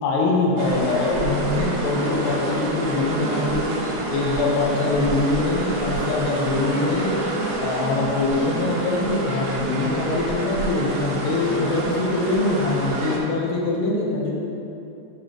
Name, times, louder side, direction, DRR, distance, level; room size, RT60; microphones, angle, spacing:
voice 1, 0.0-3.8 4.1-7.2 7.6-14.3, left 2 dB, 75° left, -3 dB, 2.6 m, -23 dB
sound 1, 0.6-13.2, right 2 dB, 85° right, 2.2 m, -28 dB
10.5 x 5.5 x 2.9 m, 2.8 s
omnidirectional pair, 5.9 m